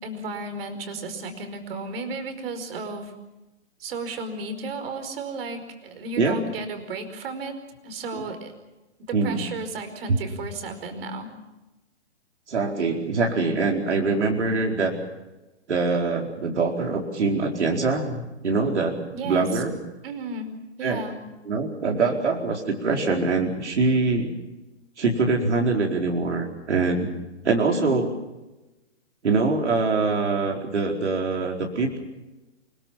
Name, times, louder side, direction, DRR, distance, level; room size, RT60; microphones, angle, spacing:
voice 1, 0.0-3.1 3.8-7.6 7.8-8.5 9.1-11.3 19.1-19.6 20.0-21.2 27.6-28.1, right 3 dB, 55° right, 7 dB, 5.1 m, -34 dB
voice 2, 12.5-14.9 15.7-19.0 19.2-19.8 20.8-21.0 21.5-24.3 25.0-27.1 27.4-28.1 29.2-32.0, right 3 dB, 80° right, 1 dB, 4.7 m, -24 dB
29.5 x 19.0 x 7.3 m, 1.0 s
hypercardioid pair, 135°, 34 cm